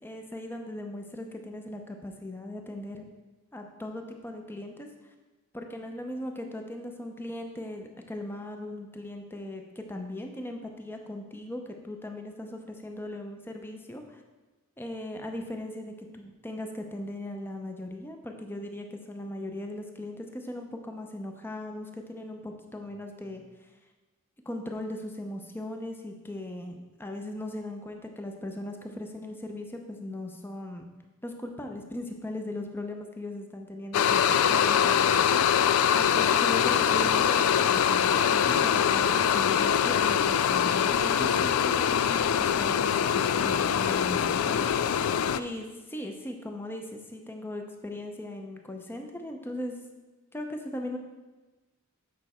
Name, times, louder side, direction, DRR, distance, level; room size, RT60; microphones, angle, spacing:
voice 1, 0.0-3.0 3.5-4.9 5.5-14.2 14.8-23.4 24.5-30.9 31.2-35.6 36.0-49.7 50.3-51.0, left 1 dB, 10° left, 4 dB, 0.6 m, -38 dB
sound 1, 33.9-45.4, left 8 dB, 85° left, 0.3 m, -23 dB
8.5 x 5.4 x 4.3 m, 1.2 s
head